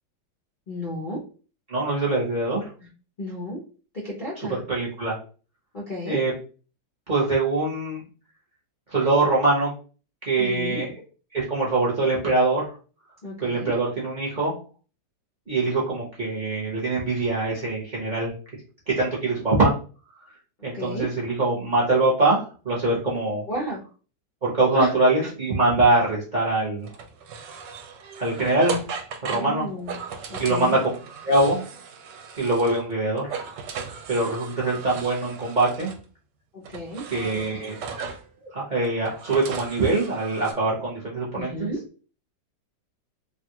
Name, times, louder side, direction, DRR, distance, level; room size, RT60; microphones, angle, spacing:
voice 1, 0.7-1.2 3.2-3.6 3.9-4.6 5.7-6.2 10.4-10.8 13.2-13.7 20.7-21.1 23.5-23.8 24.7-24.9 25.2-25.3 29.3-30.0 30.3-30.8 36.5-37.0 41.3-41.8, equal, 90° left, -4 dB, 0.4 m, -32 dB
voice 2, 1.7-2.6 4.5-5.2 6.0-6.3 7.1-8.0 8.9-9.7 10.2-10.9 11.3-12.7 13.4-14.5 15.5-18.3 19.0-19.7 20.6-23.5 24.4-26.9 28.2-28.8 29.3-29.7 30.4-30.8 31.3-31.6 32.4-33.4 34.1-35.9 37.1-37.8 38.4-41.7, right 2 dB, 35° right, -5 dB, 0.7 m, -23 dB
sound 1, 26.9-32.9 33.2-36.0 36.6-38.3 38.8-40.5, right 6 dB, 75° right, 1.1 m, -37 dB
3.2 x 2.4 x 2.8 m, 0.37 s
omnidirectional pair, 2.0 m